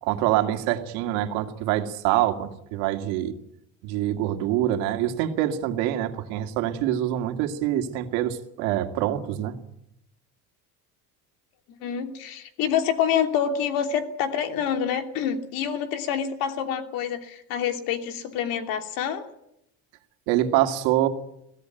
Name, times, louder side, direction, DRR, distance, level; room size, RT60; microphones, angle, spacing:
voice 1, 0.0-3.3 3.8-9.5 20.3-21.1, right 13 dB, 75° right, 5 dB, 2.5 m, -25 dB
voice 2, 11.8-19.3, left 8 dB, 65° left, 6 dB, 2.9 m, -27 dB
22.5 x 16.5 x 9.2 m, 0.79 s
cardioid pair, 150°, 37 cm